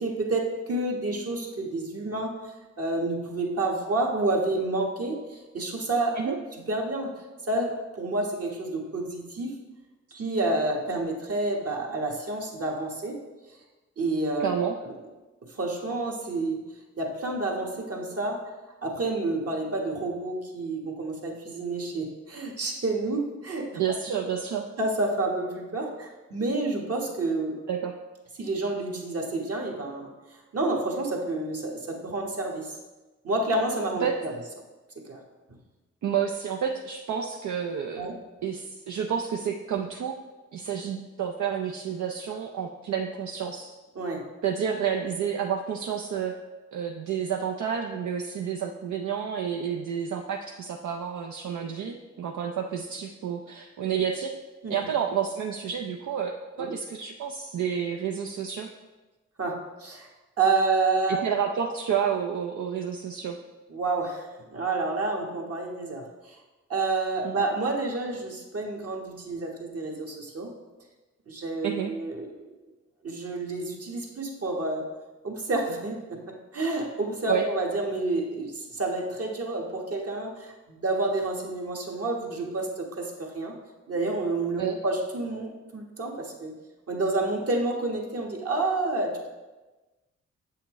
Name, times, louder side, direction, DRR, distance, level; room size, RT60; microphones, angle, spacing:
voice 1, 0.0-6.1 6.7-7.1 7.4-9.6 10.1-13.2 14.0-14.9 15.5-16.6 17.0-18.4 18.8-23.7 24.8-27.6 28.4-32.7 33.2-34.3 34.9-35.2 37.9-38.1 43.9-44.2 54.6-54.8 56.6-56.7 59.4-60.1 60.4-61.3 63.7-66.4 66.7-70.5 71.3-72.5 73.0-74.8 75.2-76.2 76.5-83.5 83.9-86.5 86.9-89.3, right 2 dB, 50° right, 0 dB, 1.4 m, -29 dB
voice 2, 14.4-14.8 23.7-24.7 27.7-27.9 34.0-34.1 36.0-38.1 38.4-40.2 40.5-43.7 44.4-46.3 46.7-54.3 54.7-58.7 61.1-63.4 67.2-67.4 71.6-71.9 77.3-77.5 84.6-84.8, right 8 dB, 75° right, 2 dB, 0.6 m, -30 dB
7.6 x 5.7 x 3.1 m, 1.2 s
cardioid pair, 50°, 30 cm